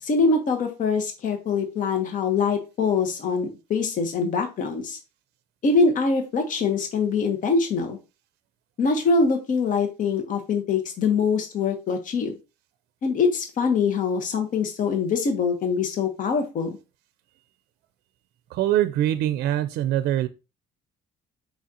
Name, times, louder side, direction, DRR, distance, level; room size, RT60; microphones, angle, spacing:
voice 1, 0.0-5.0 5.6-8.0 8.8-12.3 13.0-16.8, left 4 dB, 50° left, 1.0 m, -23 dB
voice 2, 18.6-20.3, right 12 dB, 75° right, 0.4 m, -23 dB
4.9 x 3.7 x 2.7 m
cardioid pair, 110°, 17 cm